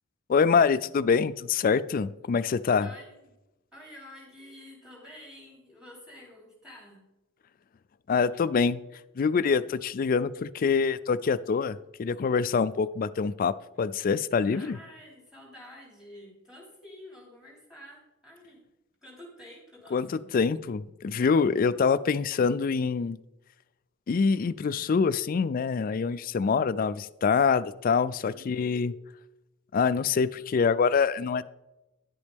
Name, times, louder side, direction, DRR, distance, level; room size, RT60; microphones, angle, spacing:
voice 1, 0.3-2.9 8.1-8.8 9.2-14.8 19.9-23.2 24.1-28.9 29.7-31.4, left 5 dB, 45° left, 16 dB, 0.3 m, -25 dB
voice 2, 2.8-3.3 3.7-7.0 14.4-18.6 19.0-20.3 28.3-28.9, left 1 dB, 5° right, -3 dB, 3.3 m, -49 dB
10.5 x 8.1 x 3.5 m, 0.97 s
head